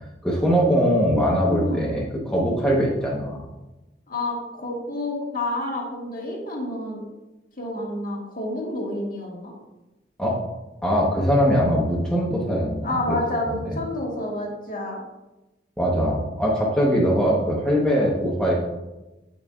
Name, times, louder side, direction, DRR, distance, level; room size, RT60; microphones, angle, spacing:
voice 1, 0.2-3.4 10.2-10.4 10.8-13.2 13.5-13.8 15.8-18.5, equal, 5° left, -6 dB, 1.1 m, -21 dB
voice 2, 1.5-1.9 4.1-7.0 7.6-9.5 12.8-15.0, left 1 dB, 50° left, -1 dB, 1.5 m, -29 dB
9.3 x 5.4 x 2.4 m, 1.0 s
head